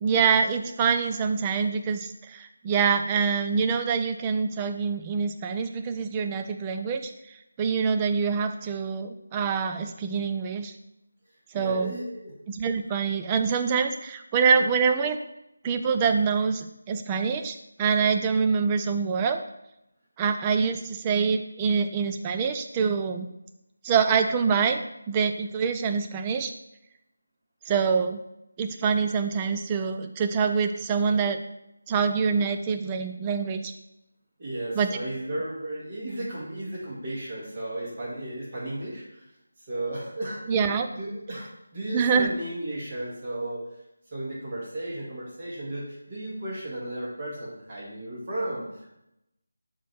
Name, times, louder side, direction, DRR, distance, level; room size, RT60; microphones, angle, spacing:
voice 1, 0.0-7.1 7.6-10.7 11.5-11.9 12.5-15.2 15.6-19.4 20.2-23.3 23.8-24.8 25.1-26.5 27.7-28.2 28.6-31.4 31.9-33.7 34.7-35.0 40.5-40.9 41.9-42.3, right 6 dB, 15° right, 7 dB, 0.4 m, -25 dB
voice 2, 11.5-12.3 34.4-39.2 39.7-40.4 40.9-43.7 44.1-48.9, right 1 dB, 35° right, -5 dB, 2.2 m, -34 dB
6.1 x 3.1 x 5.6 m, 0.85 s
figure-of-eight pair, 165°, 0 cm